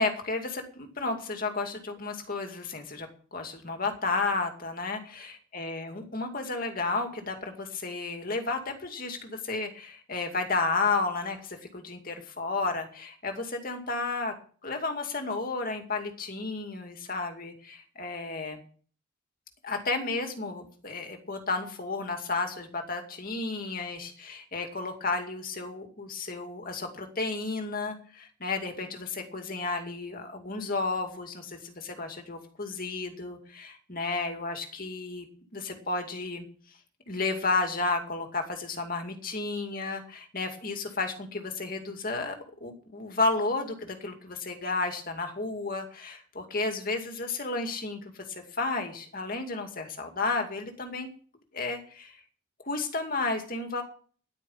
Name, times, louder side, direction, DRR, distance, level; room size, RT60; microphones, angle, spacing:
voice 1, 0.0-14.3 14.6-18.6 19.6-35.3 35.5-36.5 37.1-51.1 51.5-52.2 52.6-53.8, left 3 dB, 45° left, 4 dB, 2.4 m, -32 dB
10.5 x 9.7 x 7.3 m, 0.43 s
head